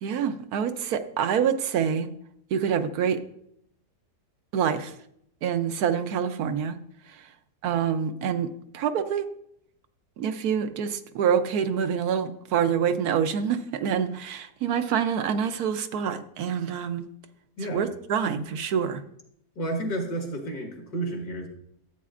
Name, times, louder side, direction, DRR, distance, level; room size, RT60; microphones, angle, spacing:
voice 1, 0.0-2.1 2.5-3.2 4.5-4.9 5.4-6.8 7.1-7.3 7.6-8.5 8.7-9.3 10.2-17.0 17.7-19.0, right 7 dB, 70° right, 9 dB, 1.1 m, -26 dB
voice 2, 17.6-17.9 19.6-21.5, right 2 dB, 65° left, 1 dB, 2.0 m, -31 dB
13.5 x 8.3 x 2.5 m, 0.72 s
omnidirectional pair, 1.7 m